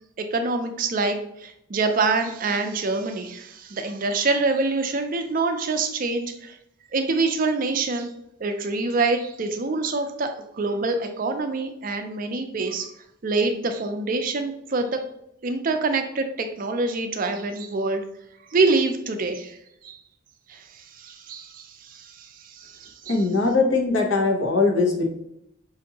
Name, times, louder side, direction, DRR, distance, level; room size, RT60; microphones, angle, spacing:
voice 1, 0.2-6.6 6.9-8.1 8.4-12.9 13.2-15.0 15.4-18.0 18.5-19.6 19.8-20.0 20.5-23.2, right 3 dB, 40° right, 6 dB, 0.4 m, -26 dB
voice 2, 23.1-25.0, left 3 dB, 65° left, 0 dB, 0.9 m, -21 dB
5.5 x 2.5 x 2.8 m, 0.78 s
head